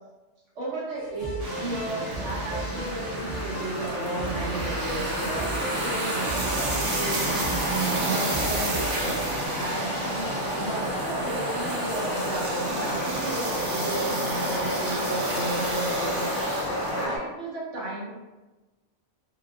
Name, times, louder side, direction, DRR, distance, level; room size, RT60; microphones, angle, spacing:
voice 1, 0.5-18.1, right 2 dB, 90° right, -7 dB, 1.3 m, -34 dB
sound 1, 1.0-17.2, left 1 dB, 75° left, 1.0 m, -32 dB
sound 2, 1.2-9.5, right 1 dB, 20° right, 0.8 m, -35 dB
sound 3, 1.4-17.1, right 2 dB, 60° right, 0.8 m, -31 dB
3.1 x 2.6 x 2.3 m, 1.1 s
omnidirectional pair, 1.2 m